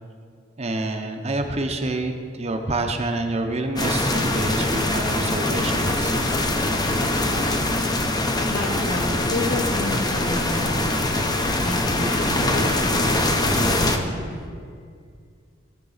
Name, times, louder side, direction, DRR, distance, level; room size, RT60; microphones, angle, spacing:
voice 1, 0.6-6.1, right 2 dB, 35° right, 5 dB, 0.8 m, -27 dB
sound 1, 3.8-14.0, left 1 dB, 20° left, 0.8 m, -23 dB
voice 2, 8.5-14.4, left 1 dB, 60° left, -1 dB, 2.0 m, -31 dB
17.0 x 6.8 x 4.1 m, 2.2 s
head